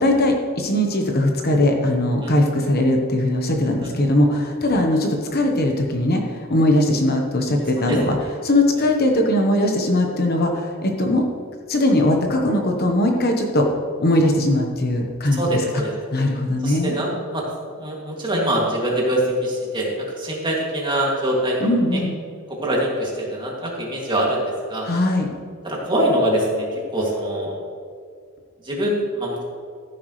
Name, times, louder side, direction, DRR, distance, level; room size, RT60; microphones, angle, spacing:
voice 1, 0.0-8.2 8.4-11.2 11.7-13.7 14.0-15.4 16.1-16.9 21.6-22.1 24.8-25.3, left 1 dB, 45° left, 2 dB, 1.1 m, -20 dB
voice 2, 15.3-15.9 16.6-22.0 22.5-24.9 25.6-27.6 28.6-29.4, right 1 dB, 20° right, -3 dB, 2.5 m, -24 dB
14.5 x 10.5 x 3.3 m, 2.2 s
head